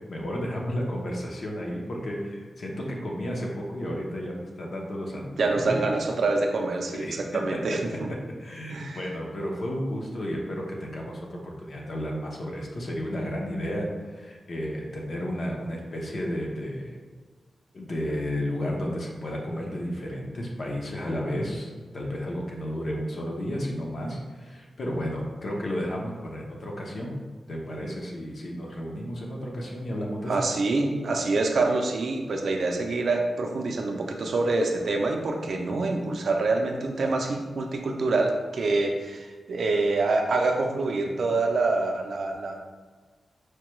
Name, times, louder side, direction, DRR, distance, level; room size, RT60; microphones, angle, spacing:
voice 1, 0.1-5.9 6.9-7.4 8.4-16.9 17.7-27.1 27.5-30.3, equal, 45° left, -1 dB, 0.6 m, -32 dB
voice 2, 5.4-8.1 8.7-9.0 30.3-42.6, right 3 dB, 55° right, 2 dB, 0.4 m, -26 dB
4.5 x 2.2 x 3.0 m, 1.5 s
wide cardioid pair, 175°, 0 cm